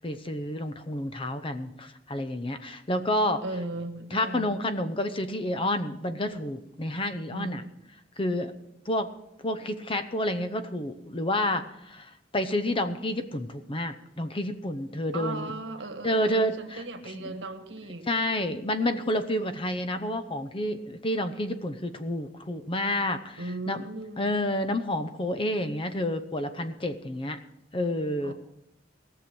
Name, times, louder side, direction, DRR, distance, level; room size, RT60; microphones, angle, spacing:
voice 1, 0.0-3.4 4.1-7.6 8.2-8.5 8.9-9.1 9.4-12.1 12.3-15.5 16.0-16.8 17.1-17.3 18.1-23.8 24.2-27.4 27.7-28.3, left 1 dB, 30° left, 10 dB, 0.8 m, -29 dB
voice 2, 3.4-4.6 7.3-7.7 15.1-18.1 23.4-24.3 28.2-28.3, right 2 dB, 80° right, 7 dB, 1.4 m, -37 dB
18.0 x 6.8 x 6.1 m, 0.83 s
head